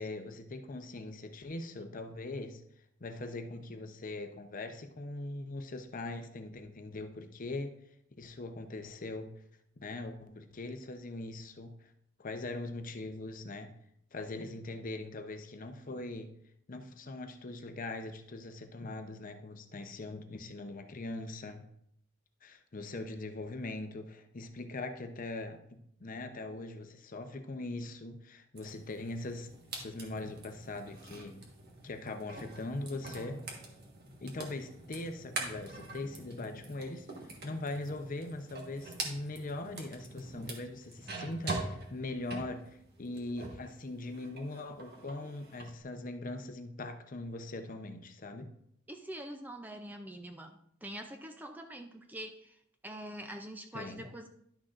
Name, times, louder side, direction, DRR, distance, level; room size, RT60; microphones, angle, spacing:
voice 1, 0.0-2.6 3.0-7.8 8.2-9.4 9.8-11.9 12.2-13.8 14.1-16.4 16.7-21.7 22.4-31.4 31.8-33.4 34.2-37.1 37.4-48.5 53.7-54.1, left 2 dB, 40° left, 7 dB, 0.7 m, -41 dB
sound 1, 28.5-43.7 44.0-45.7, right 2 dB, 50° right, 1.4 m, -44 dB
voice 2, 48.9-54.3, right 1 dB, 10° right, 5 dB, 0.4 m, -45 dB
11.0 x 6.2 x 2.5 m, 0.71 s
head